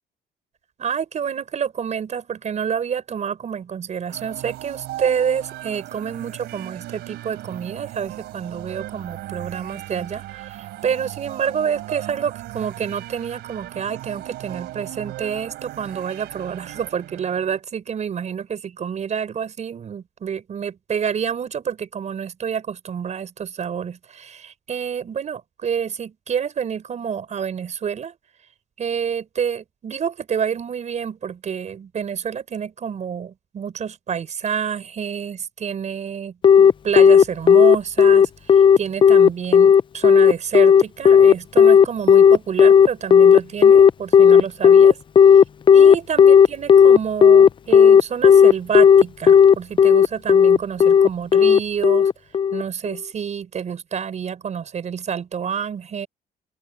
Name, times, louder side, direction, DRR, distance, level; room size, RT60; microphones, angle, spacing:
voice 1, 0.8-28.2 28.8-45.0 45.3-45.4 45.7-52.1 52.5-56.1, right 7 dB, 45° right, 5.4 m, -28 dB
sound 1, 4.1-17.6, right 16 dB, 80° right, 3.8 m, -37 dB
Telephone, 36.4-52.6, left 7 dB, 30° left, 0.4 m, -11 dB
open air
cardioid pair, 110°, 17 cm